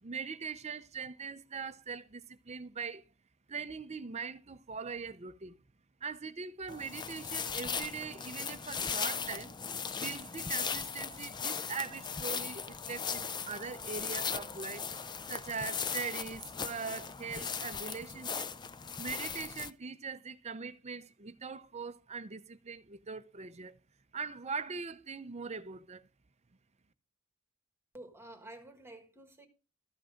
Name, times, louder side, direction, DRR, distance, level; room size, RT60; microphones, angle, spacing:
voice 1, 0.0-3.0 3.5-5.6 6.0-9.5 9.9-14.9 15.3-18.5 19.0-23.8 24.1-26.1, right 5 dB, 30° right, 0.6 m, -41 dB
sound 1, 6.7-19.7, left 6 dB, 20° left, 0.4 m, -38 dB
voice 2, 27.9-29.5, right 1 dB, 10° right, 1.5 m, -50 dB
13.5 x 6.1 x 5.1 m
head